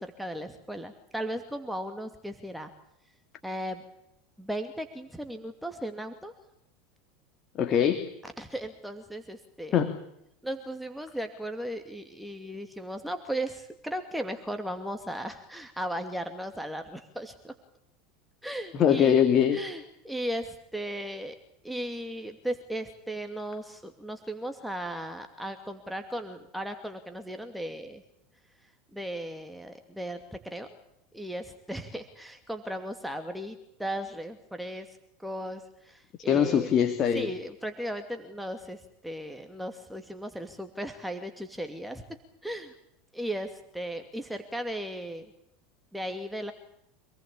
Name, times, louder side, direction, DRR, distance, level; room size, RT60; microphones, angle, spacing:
voice 1, 0.0-2.7 3.4-3.8 4.4-6.3 8.2-9.8 10.4-17.5 18.4-19.2 19.5-21.4 21.6-28.0 28.9-30.7 31.1-36.7 37.1-42.0 42.4-42.7 43.1-45.2 45.9-46.5, right 1 dB, ahead, 6 dB, 2.5 m, -36 dB
voice 2, 7.6-8.1 9.7-10.0 18.7-19.6 36.3-37.3, left 8 dB, 40° left, 8 dB, 2.5 m, -22 dB
26.5 x 19.0 x 8.6 m, 0.77 s
hypercardioid pair, 80°, 0 cm